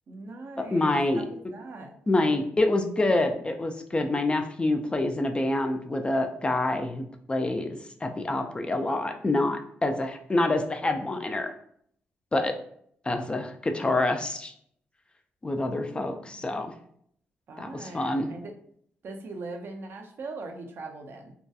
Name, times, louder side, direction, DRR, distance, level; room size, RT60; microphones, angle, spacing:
voice 1, 0.1-2.0 15.9-16.5 17.5-18.5 19.0-21.3, right 3 dB, 60° right, 4 dB, 0.4 m, -41 dB
voice 2, 0.6-1.2 2.1-11.5 12.3-12.6 13.1-14.5 15.4-16.7 17.6-18.3, left 2 dB, 25° left, 6 dB, 0.3 m, -27 dB
2.7 x 2.2 x 2.3 m, 0.65 s
cardioid pair, 65°, 4 cm